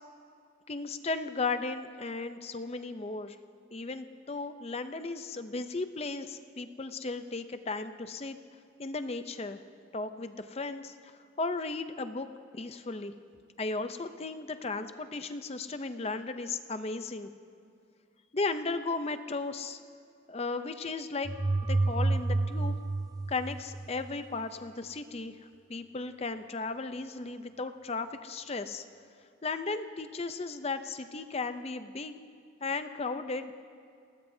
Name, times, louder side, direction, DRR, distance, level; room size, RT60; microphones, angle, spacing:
voice 1, 0.7-3.4 3.7-8.4 8.8-9.6 9.9-11.1 11.4-12.3 12.5-13.1 13.6-17.3 18.3-19.8 20.3-21.3 21.7-22.8 23.3-28.8 29.4-32.1 32.6-33.6, left 3 dB, 30° left, 10 dB, 0.6 m, -35 dB
sound 1, 21.3-24.1, right 2 dB, 20° right, 0.4 m, -29 dB
28.0 x 19.0 x 2.7 m, 2.4 s
head